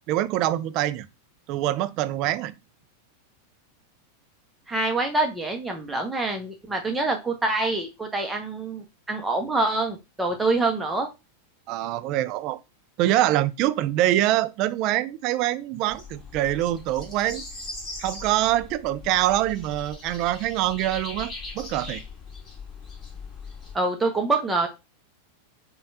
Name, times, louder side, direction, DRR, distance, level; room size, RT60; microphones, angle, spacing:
voice 1, 0.1-1.1 1.5-2.5 11.7-12.6 13.0-17.4 18.0-22.0, right 14 dB, 40° right, 0.3 m, -24 dB
voice 2, 4.7-11.1 23.7-24.7, right 2 dB, 10° right, 0.8 m, -26 dB
sound 1, 15.9-23.7, left 3 dB, 25° left, 1.8 m, -40 dB
5.2 x 2.3 x 2.6 m
figure-of-eight pair, 90°, 0 cm